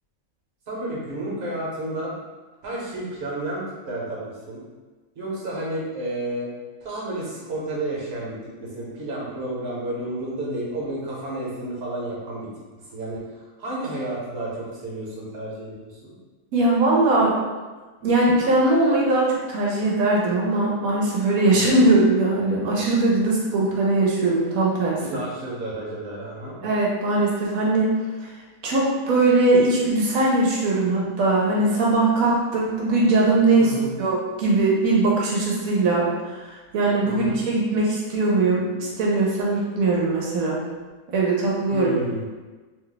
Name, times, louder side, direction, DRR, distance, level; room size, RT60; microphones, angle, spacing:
voice 1, 0.7-2.1 2.6-4.6 5.1-6.5 6.8-12.5 12.9-16.1 21.4-21.8 25.0-26.6 33.6-33.9 37.0-37.4 41.7-42.3, right 1 dB, 50° right, -5 dB, 1.1 m, -31 dB
voice 2, 16.5-17.4 18.0-25.2 26.6-28.0 28.2-28.3 28.6-33.7 34.0-40.6 41.1-41.9, right 2 dB, 85° right, -4 dB, 1.0 m, -20 dB
2.8 x 2.2 x 3.8 m, 1.3 s
omnidirectional pair, 1.5 m